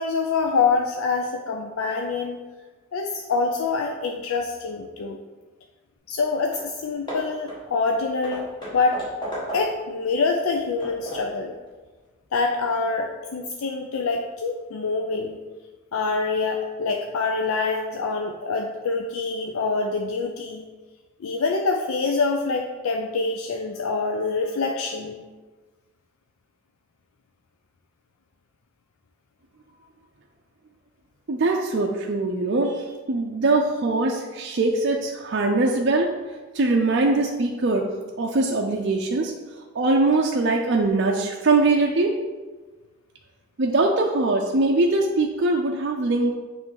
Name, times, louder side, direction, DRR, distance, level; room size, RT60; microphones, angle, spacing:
voice 1, 0.0-2.4 2.9-5.2 6.1-9.0 9.5-11.5 12.3-15.4 15.9-20.7 21.2-25.2, left 4 dB, 80° left, 3 dB, 0.4 m, -25 dB
Hammer / Wood, 6.1-6.2 6.5-6.7 7.1-9.9 10.4-11.4, equal, 20° left, 1.5 m, -35 dB
voice 2, 31.3-36.1 36.5-37.9 38.2-39.3 39.7-42.2 43.6-46.3, right 2 dB, 50° right, 0 dB, 0.5 m, -22 dB
7.4 x 3.2 x 4.7 m, 1.3 s
head